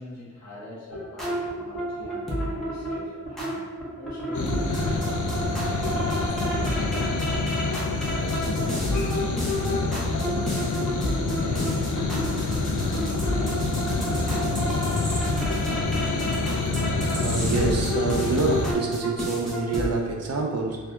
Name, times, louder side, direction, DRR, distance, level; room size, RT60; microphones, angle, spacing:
voice 1, 0.0-5.1 5.6-7.4 8.0-10.8 11.2-12.1 12.8-13.0 13.3-13.8, left 1 dB, 65° left, -5 dB, 1.3 m, -42 dB
sound 1, 0.9-19.9, equal, ahead, 1.0 m, -30 dB
sound 2, 4.3-18.7, left 3 dB, 85° left, 0.5 m, -27 dB
voice 2, 17.1-20.8, right 3 dB, 60° right, 0 dB, 0.7 m, -27 dB
5.8 x 2.6 x 2.2 m, 1.4 s
wide cardioid pair, 120°, 29 cm